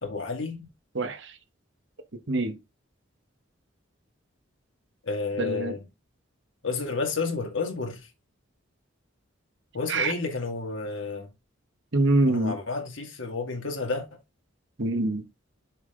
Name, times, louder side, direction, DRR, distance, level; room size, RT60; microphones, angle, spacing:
voice 1, 0.0-0.7 5.0-5.8 6.6-8.1 9.7-11.3 12.3-14.1, left 4 dB, 80° left, 2.2 m, -31 dB
voice 2, 0.9-1.3 2.3-2.6 5.4-5.7 9.9-10.1 11.9-12.6 14.8-15.2, right 2 dB, 65° right, 1.1 m, -24 dB
7.0 x 5.4 x 3.8 m
head